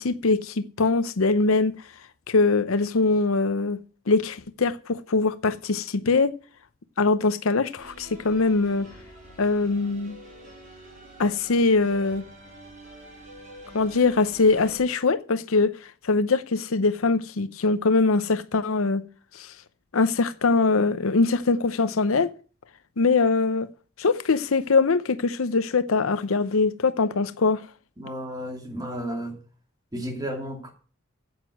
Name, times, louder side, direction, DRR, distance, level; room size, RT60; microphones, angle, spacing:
voice 1, 0.0-1.7 2.3-3.8 4.1-6.3 7.0-8.9 9.4-10.2 11.2-12.2 13.7-15.7 16.0-19.0 19.3-19.5 19.9-22.3 23.0-23.7 24.0-27.7, left 3 dB, 75° left, 0.7 m, -22 dB
sound 1, 7.8-14.8, right 1 dB, 35° right, 4.9 m, -46 dB
voice 2, 28.0-29.4 29.9-30.7, equal, 20° right, 2.5 m, -33 dB
9.5 x 8.1 x 6.5 m
head